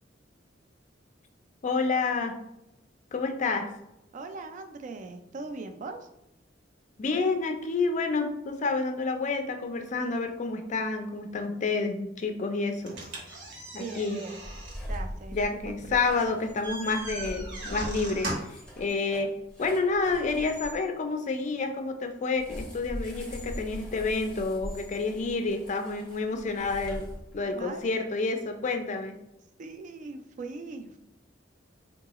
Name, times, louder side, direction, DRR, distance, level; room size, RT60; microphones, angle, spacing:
voice 1, 1.6-2.4 3.1-3.7 7.0-12.9 13.7-14.2 15.3-18.3 18.8-19.3 19.6-27.1 27.3-29.2, left 3 dB, 40° left, 6 dB, 0.4 m, -29 dB
voice 2, 4.1-6.0 13.8-14.4 14.9-16.4 27.5-27.8 29.6-31.0, right 3 dB, 40° right, 7 dB, 0.3 m, -40 dB
sound 1, 12.8-18.7, right 2 dB, 70° right, 0.9 m, -39 dB
sound 2, 14.4-20.8 22.4-27.6, equal, 5° left, 0.7 m, -41 dB
3.7 x 2.3 x 2.9 m, 0.84 s
head